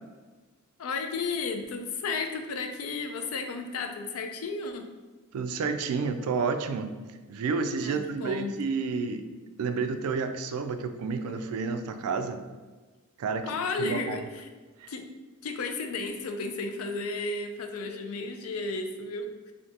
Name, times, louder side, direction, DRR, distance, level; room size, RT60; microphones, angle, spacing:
voice 1, 0.8-4.9 7.8-8.6 13.4-14.5 14.9-15.0 15.4-19.5, left 3 dB, 70° left, 5 dB, 0.4 m, -33 dB
voice 2, 5.3-6.9 7.3-9.2 9.6-12.4 13.2-13.4 13.8-14.2 14.8-14.9, right 5 dB, 75° right, 7 dB, 0.3 m, -30 dB
3.2 x 2.7 x 2.7 m, 1.3 s
head